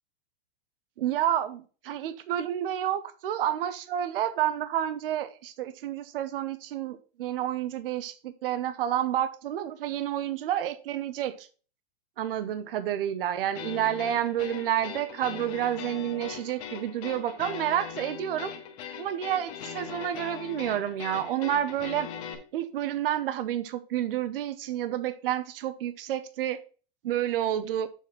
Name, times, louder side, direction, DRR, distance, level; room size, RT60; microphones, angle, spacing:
voice 1, 1.0-11.5 12.2-18.5 19.0-22.1 22.5-26.6 27.0-27.9, right 11 dB, 60° right, 0.8 m, -29 dB
sound 1, 13.5-22.3, left 8 dB, 30° left, 1.3 m, -40 dB
7.2 x 4.1 x 5.9 m
supercardioid pair, 170°, 32 cm